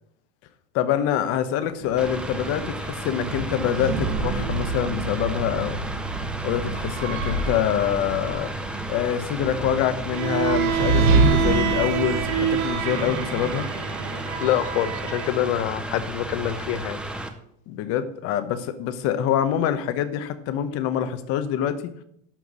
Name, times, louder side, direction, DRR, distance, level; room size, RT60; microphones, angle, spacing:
voice 1, 0.7-5.8 6.4-8.5 8.9-13.7 17.7-21.9, left 9 dB, 40° left, 11 dB, 1.0 m, -25 dB
sound 1, 1.7-13.9, right 3 dB, 85° right, 2.2 m, -28 dB
Mechanical fan, 2.0-17.3, right 1 dB, 5° right, 0.5 m, -33 dB
Bowed string instrument, 10.1-15.4, right 8 dB, 50° right, 1.7 m, -27 dB
voice 2, 14.4-17.0, left 12 dB, 70° left, 13 dB, 1.0 m, -25 dB
11.5 x 4.6 x 8.2 m, 0.71 s
supercardioid pair, 165°, 37 cm